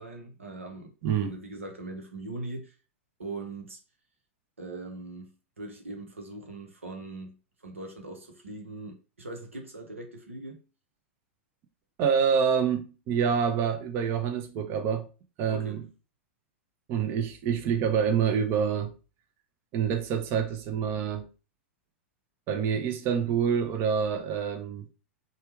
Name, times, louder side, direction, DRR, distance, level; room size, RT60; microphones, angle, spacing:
voice 1, 0.0-2.7 3.2-3.8 4.6-7.4 7.6-10.6 15.5-15.8, right 2 dB, 85° right, 0.9 m, -41 dB
voice 2, 1.0-1.4 12.0-15.1 15.4-15.8 16.9-18.9 19.7-21.3 22.5-24.9, right 7 dB, 40° right, 0.6 m, -27 dB
3.3 x 2.2 x 3.1 m
figure-of-eight pair, 100°, 7 cm